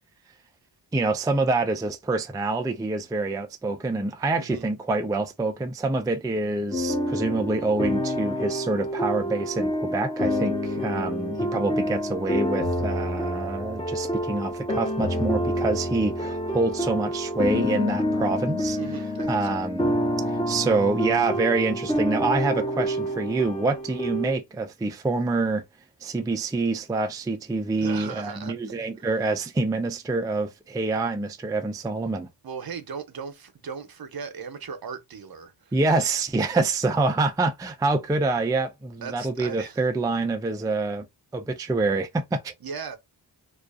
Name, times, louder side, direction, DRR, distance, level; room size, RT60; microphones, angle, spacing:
voice 1, 0.9-18.8 19.3-19.9 20.3-25.6 26.0-32.3 35.7-41.0 41.3-42.5, right 3 dB, 10° right, 0.3 m, -26 dB
voice 2, 4.4-4.7 18.8-19.6 27.8-28.6 32.4-35.7 39.0-39.8 42.6-43.0, right 6 dB, 55° right, 0.7 m, -37 dB
sound 1, 6.7-24.4, equal, 10° left, 0.8 m, -28 dB
2.3 x 2.3 x 2.4 m
cardioid pair, 50°, 44 cm